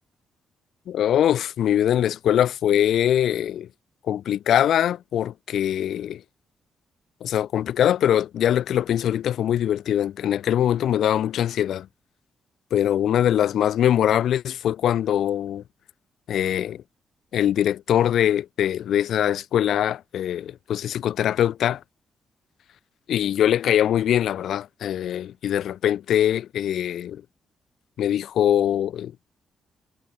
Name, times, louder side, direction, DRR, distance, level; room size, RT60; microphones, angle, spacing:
voice 1, 0.9-3.7 4.1-6.2 7.2-11.9 12.7-15.6 16.3-16.8 17.3-21.8 23.1-27.2 28.0-29.3, left 10 dB, 70° left, 0.5 m, -22 dB
wide cardioid pair, 180°, 0 cm